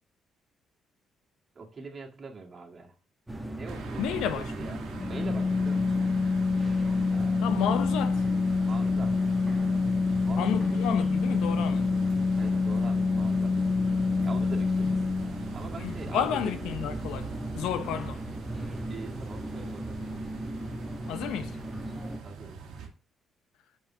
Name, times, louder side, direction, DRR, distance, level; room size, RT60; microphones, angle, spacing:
voice 1, 1.6-3.0 3.6-6.1 7.1-7.5 8.6-9.6 10.2-10.6 12.4-13.5 14.2-15.0 15.5-16.6 18.9-20.0 22.2-22.6, right 4 dB, 40° right, 2.0 m, -43 dB
sound 1, 3.3-22.2, right 1 dB, 10° right, 1.5 m, -37 dB
sound 2, 3.7-22.9, right 6 dB, 85° right, 1.4 m, -45 dB
voice 2, 4.0-4.8 7.4-8.2 10.4-12.0 14.8-14.9 15.8-17.3 17.5-18.2 21.1-21.6, left 9 dB, 90° left, 0.8 m, -31 dB
Organ, 5.0-15.6, left 4 dB, 30° left, 0.5 m, -26 dB
5.4 x 4.9 x 5.6 m
cardioid pair, 90°, 0 cm